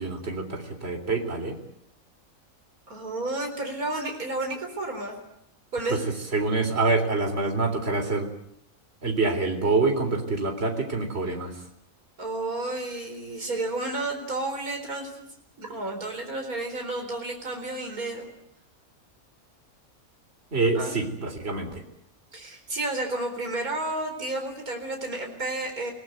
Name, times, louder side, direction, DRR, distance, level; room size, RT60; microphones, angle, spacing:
voice 1, 0.0-1.6 6.3-8.3 9.0-11.5 20.5-21.8, right 3 dB, 45° right, 6 dB, 3.9 m, -26 dB
voice 2, 2.9-5.2 5.7-6.0 12.2-15.1 15.6-18.3 20.7-21.0 22.3-25.9, right 2 dB, 80° right, 3 dB, 4.8 m, -31 dB
27.5 x 18.5 x 9.3 m, 0.78 s
omnidirectional pair, 1.5 m